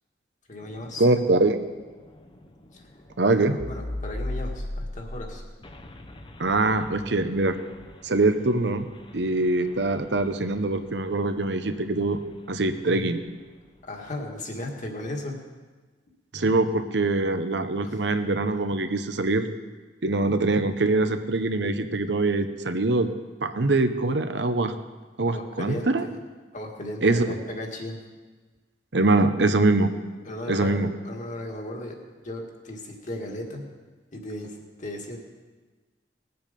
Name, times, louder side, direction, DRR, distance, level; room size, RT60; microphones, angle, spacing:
voice 1, 0.5-1.1 2.7-2.8 3.3-5.4 13.8-15.4 17.8-18.0 25.3-26.2 26.5-28.0 30.3-32.0 32.2-33.7 34.1-35.2, left 1 dB, 45° left, 1 dB, 1.9 m, -36 dB
sound 1, 0.6-13.3, left 1 dB, 30° left, 0.8 m, -40 dB
voice 2, 1.0-1.6 3.2-3.6 6.4-7.6 8.0-8.9 9.1-12.2 12.5-13.2 16.3-19.5 20.0-23.1 23.4-24.7 25.2-26.0 27.0-27.3 28.9-29.9 30.5-30.9, right 2 dB, 70° right, 9 dB, 0.9 m, -23 dB
19.5 x 7.9 x 5.3 m, 1.3 s
head